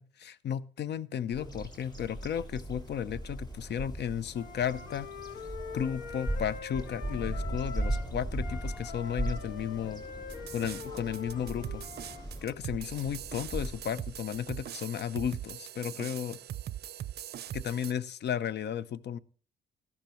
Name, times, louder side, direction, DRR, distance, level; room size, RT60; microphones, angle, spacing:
voice 1, 0.0-5.1 5.7-10.0 10.5-11.8 12.4-16.4 17.5-19.2, left 9 dB, 60° left, 18 dB, 0.7 m, -34 dB
Bird vocalization bird call bird song, 1.3-14.6, right 1 dB, 20° left, 3.1 m, -38 dB
Wind instrument woodwind instrument, 4.3-8.1 8.4-12.3, left 6 dB, 85° left, 1.9 m, -44 dB
sound 1, 10.3-17.9, right 11 dB, 55° right, 0.5 m, -41 dB
13.5 x 12.0 x 3.1 m, 0.42 s
cardioid pair, 90°, 20 cm